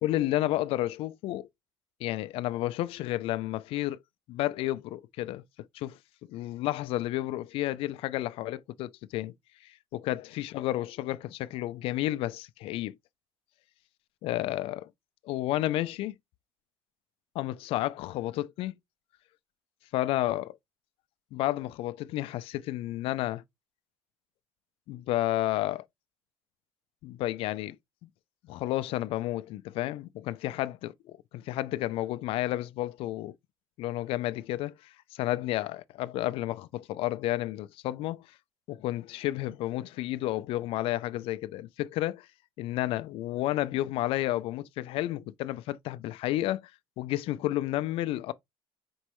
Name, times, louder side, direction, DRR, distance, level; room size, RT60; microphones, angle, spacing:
voice 1, 0.0-1.5 2.0-4.0 4.3-5.4 5.7-6.0 6.3-9.3 9.6-12.9 14.2-14.9 15.2-16.1 17.3-18.7 19.9-20.6 21.3-23.4 24.9-25.8 27.0-27.8 28.5-33.3 33.8-38.3 38.7-42.3 42.6-46.7 47.0-48.3, left 15 dB, 65° left, 0.4 m, -31 dB
4.5 x 3.0 x 3.0 m
cardioid pair, 135°, 10 cm